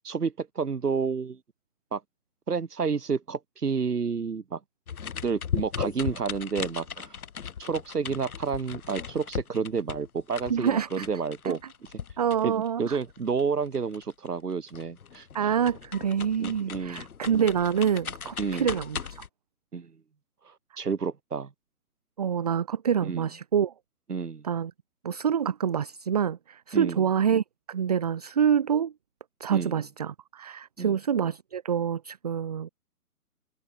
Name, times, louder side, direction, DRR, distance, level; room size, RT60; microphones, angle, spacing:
voice 1, 0.0-1.4 1.9-2.0 2.5-4.6 5.2-7.2 7.6-11.6 12.4-15.3 16.4-17.1 18.4-18.7 19.7-19.9 20.5-21.5 23.0-23.3 24.1-24.4 26.7-27.0 29.5-29.8 30.8-30.9, right 5 dB, 75° right, 3.6 m, -30 dB
sound 1, 4.9-14.4 14.7-19.3, left 7 dB, 65° left, 1.5 m, -37 dB
voice 2, 10.5-11.1 11.4-11.6 12.2-13.0 15.3-19.2 22.2-23.7 24.4-24.7 25.0-28.9 29.4-32.7, right 8 dB, 25° right, 0.8 m, -27 dB
hypercardioid pair, 155°, 46 cm